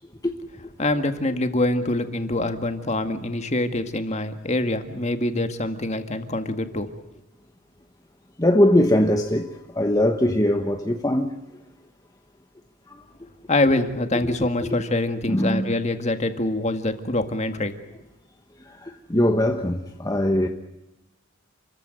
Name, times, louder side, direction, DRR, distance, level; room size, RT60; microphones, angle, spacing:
voice 1, 0.8-6.9 13.5-17.8, left 2 dB, 35° left, 1.9 m, -25 dB
voice 2, 8.4-11.6 12.9-13.0 14.1-14.3 14.6-14.7 15.3-15.7 18.6-20.5, left 1 dB, 15° left, 1.2 m, -21 dB
29.0 x 15.0 x 9.3 m
head